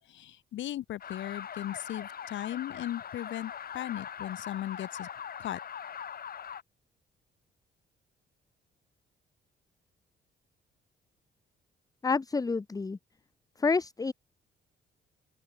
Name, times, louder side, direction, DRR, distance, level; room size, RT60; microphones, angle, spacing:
voice 1, 0.1-5.1 5.4-5.6, left 13 dB, 70° left, 1.1 m, -37 dB
sound 1, 1.0-6.6, left 8 dB, 50° left, 1.3 m, -41 dB
voice 2, 12.0-13.0 13.6-14.1, left 4 dB, 20° left, 0.7 m, -28 dB
open air
cardioid pair, 90°, 20 cm